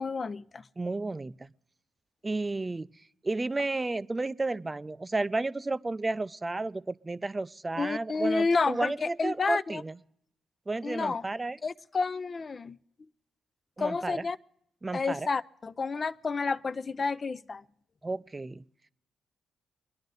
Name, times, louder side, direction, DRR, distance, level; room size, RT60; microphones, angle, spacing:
voice 1, 0.0-0.6 7.8-9.8 10.8-11.3 11.6-12.8 13.8-14.4 14.9-17.6, left 4 dB, 40° left, 13 dB, 0.4 m, -30 dB
voice 2, 0.8-1.5 2.2-2.9 3.2-10.0 10.7-11.6 13.8-14.2 14.8-15.3 18.0-18.6, right 2 dB, 25° right, 17 dB, 0.4 m, -32 dB
23.5 x 10.5 x 4.0 m, 0.74 s
supercardioid pair, 60°, 0 cm